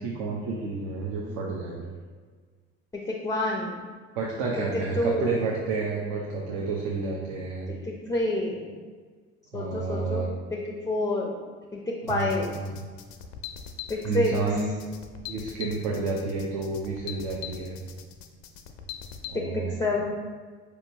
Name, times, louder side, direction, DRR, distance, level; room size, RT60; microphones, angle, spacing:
voice 1, 0.0-1.8 4.2-7.7 9.5-10.3 12.0-12.9 14.0-14.7 15.3-17.8 19.3-19.9, right 3 dB, 65° right, -2 dB, 0.6 m, -30 dB
voice 2, 2.9-3.9 5.0-5.3 7.7-8.8 9.5-10.2 10.5-11.4 11.7-12.5 13.9-14.3 19.3-20.1, left 2 dB, 10° left, 0 dB, 0.4 m, -28 dB
sound 1, 12.1-19.3, left 9 dB, 75° left, 0.5 m, -41 dB
4.4 x 2.8 x 2.6 m, 1.5 s
hypercardioid pair, 60°, 33 cm